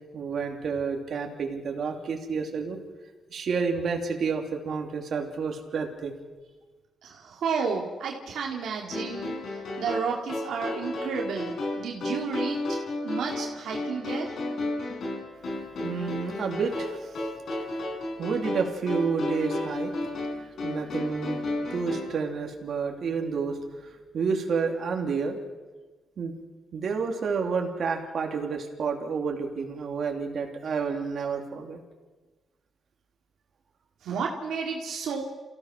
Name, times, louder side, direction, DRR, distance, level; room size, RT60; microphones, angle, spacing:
voice 1, 0.1-2.8 3.3-6.1 15.8-17.2 17.5-17.6 18.2-19.9 20.6-21.4 21.7-23.9 24.1-25.4 26.2-26.3 26.7-31.8, right 5 dB, 60° right, 2 dB, 2.9 m, -30 dB
voice 2, 7.0-12.6 13.0-14.4 34.0-35.2, right 5 dB, 85° right, -1 dB, 2.4 m, -32 dB
sound 1, 8.9-22.2, left 2 dB, 70° left, 5.8 m, -32 dB
28.0 x 16.0 x 6.1 m, 1.2 s
cardioid pair, 95°, 0 cm